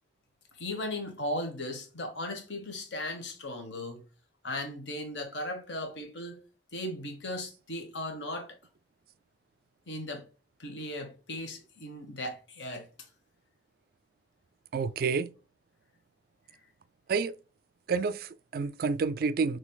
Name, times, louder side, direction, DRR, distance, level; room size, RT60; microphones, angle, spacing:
voice 1, 0.6-4.0 4.4-6.4 6.7-8.6 9.9-10.3 10.6-12.9, left 1 dB, 70° left, 1.3 m, -37 dB
voice 2, 14.7-15.3 17.1-17.4 17.9-19.6, right 5 dB, 50° right, 0.3 m, -29 dB
6.2 x 3.3 x 2.3 m
head